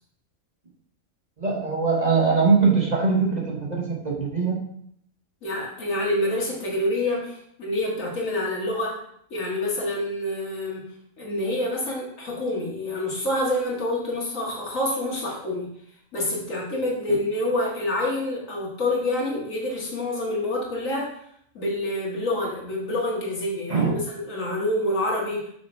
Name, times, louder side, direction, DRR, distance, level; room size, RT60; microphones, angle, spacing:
voice 1, 1.4-4.6 23.7-23.9, right 4 dB, 35° right, -2 dB, 1.1 m, -22 dB
voice 2, 5.4-9.0 9.3-10.8 11.2-15.7 16.1-21.1 21.5-24.0 24.2-25.5, left 1 dB, 75° left, -3 dB, 2.2 m, -27 dB
6.0 x 6.0 x 3.3 m, 0.68 s
omnidirectional pair, 1.4 m